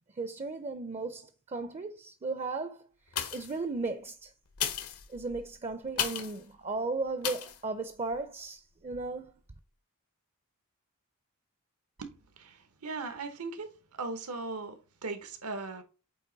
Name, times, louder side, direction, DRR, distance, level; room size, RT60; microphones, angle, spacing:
voice 1, 0.1-2.9 3.3-4.3 5.1-9.3, right 3 dB, 30° right, 0.4 m, -36 dB
sound 1, 3.1-3.6 4.5-6.4 7.2-7.6 8.1-8.2, left 9 dB, 85° left, 1.0 m, -35 dB
voice 2, 12.0-15.8, right 3 dB, 90° right, 1.1 m, -39 dB
8.3 x 2.9 x 3.9 m
head